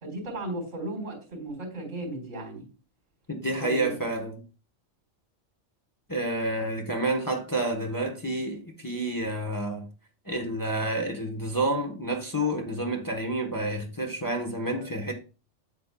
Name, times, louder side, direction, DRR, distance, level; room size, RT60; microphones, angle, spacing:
voice 1, 0.0-2.7 3.6-3.9, right 1 dB, 70° right, 3.9 m, -35 dB
voice 2, 3.3-4.4 6.1-9.9 10.2-15.1, right 1 dB, 20° left, 0.9 m, -29 dB
8.5 x 8.5 x 2.3 m
omnidirectional pair, 1.3 m